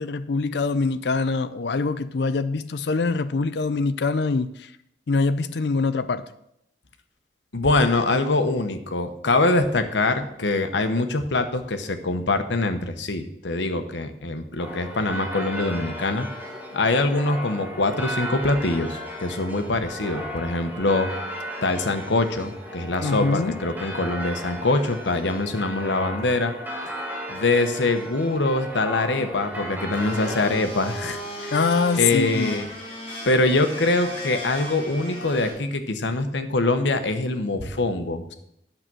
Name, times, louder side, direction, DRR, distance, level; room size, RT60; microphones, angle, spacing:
voice 1, 0.0-4.7 5.1-6.2 23.0-23.6 31.5-32.6, left 4 dB, 75° left, 12 dB, 0.5 m, -24 dB
voice 2, 7.5-16.3 16.7-21.1 21.6-26.5 27.3-31.6 32.0-32.7 33.3-38.3, left 2 dB, 90° left, 8 dB, 1.0 m, -24 dB
sound 1, 14.6-30.5, equal, 10° right, 1.5 m, -35 dB
Domestic sounds home sounds, 29.9-35.5, equal, 35° left, 3.9 m, -35 dB
8.8 x 6.7 x 6.1 m, 0.78 s
head